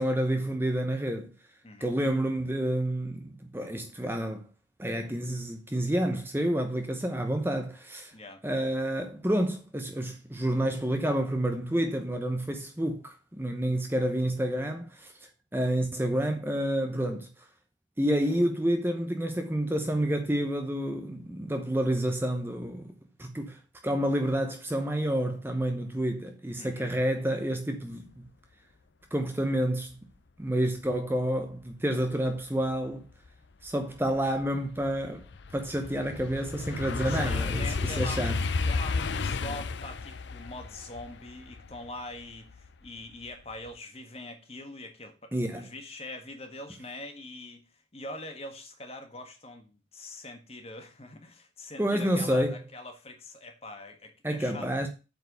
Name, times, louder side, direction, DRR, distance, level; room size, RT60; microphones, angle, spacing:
voice 1, 0.0-1.3 1.8-4.5 4.8-8.1 8.4-15.1 15.5-17.3 18.0-22.9 23.2-28.2 29.1-30.0 30.4-33.0 33.6-35.3 35.5-38.4 45.3-45.7 51.8-52.6 54.2-54.9, right 1 dB, 10° right, 0.8 m, -29 dB
voice 2, 1.6-2.0 8.1-8.4 26.6-27.0 37.1-38.3 38.6-47.6 47.9-54.7, left 2 dB, 30° left, 1.6 m, -43 dB
sound 1, 33.3-33.4 33.8-42.9 43.3-43.7, left 4 dB, 65° left, 0.6 m, -32 dB
7.9 x 4.7 x 6.7 m
head